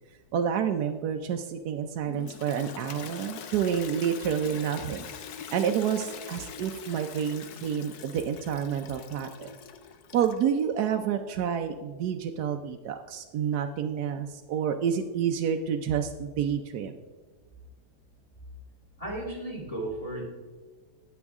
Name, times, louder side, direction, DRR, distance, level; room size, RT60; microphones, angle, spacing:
voice 1, 0.3-5.1 5.5-9.5 10.1-16.9, right 8 dB, 70° right, 4 dB, 1.2 m, -29 dB
Toilet flush, 2.0-10.6, left 7 dB, 70° left, 1.2 m, -43 dB
voice 2, 19.0-20.2, right 1 dB, 20° left, -3 dB, 3.2 m, -34 dB
19.0 x 7.1 x 3.6 m, 1.3 s
omnidirectional pair, 1.8 m